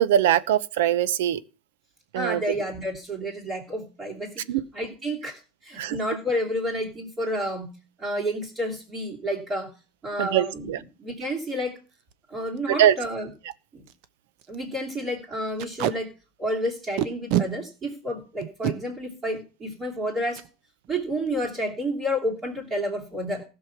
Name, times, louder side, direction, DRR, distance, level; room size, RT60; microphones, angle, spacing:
voice 1, 0.0-1.4 2.1-2.4 4.5-4.6 5.8-6.0 10.2-10.8 12.7-13.0, right 11 dB, 80° right, 0.9 m, -22 dB
voice 2, 2.1-4.4 4.7-7.7 8.0-9.7 10.0-10.7 11.0-11.8 12.3-13.3 13.7-13.9 14.5-16.1 16.4-20.4 20.9-23.4, equal, 20° right, 3.1 m, -30 dB
Packing tape duct tape, 11.9-12.1 12.6-12.7 12.9-13.0 13.5-13.6 13.9-14.1 14.4-14.6 15.6-16.0 17.0-17.5 18.4-18.8 20.3-20.5 20.8-21.0 21.3-21.7, right 12 dB, 50° right, 1.0 m, -26 dB
16.0 x 6.4 x 5.9 m
supercardioid pair, 160°, 0 cm